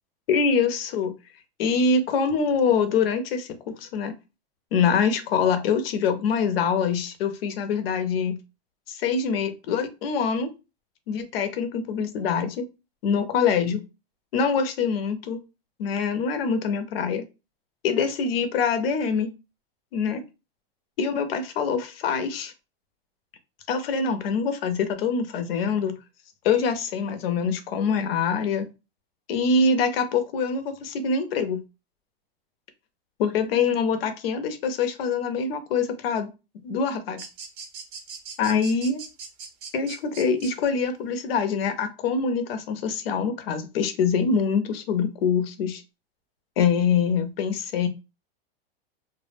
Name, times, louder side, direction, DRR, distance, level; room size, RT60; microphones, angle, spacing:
voice 1, 0.3-1.1 1.6-4.1 4.7-8.4 8.9-10.5 11.1-12.6 13.0-13.8 14.3-15.4 15.8-17.2 17.8-19.3 19.9-20.2 21.0-22.5 23.7-26.0 26.4-28.7 29.3-31.6 33.2-36.3 36.6-37.2 38.4-39.0 39.7-45.8 46.6-47.9, left 5 dB, 75° left, 9 dB, 0.6 m, -24 dB
sound 1, 37.2-40.5, right 6 dB, 35° right, 0.5 m, -40 dB
2.1 x 2.1 x 3.2 m, 0.29 s
supercardioid pair, 140°, 30 cm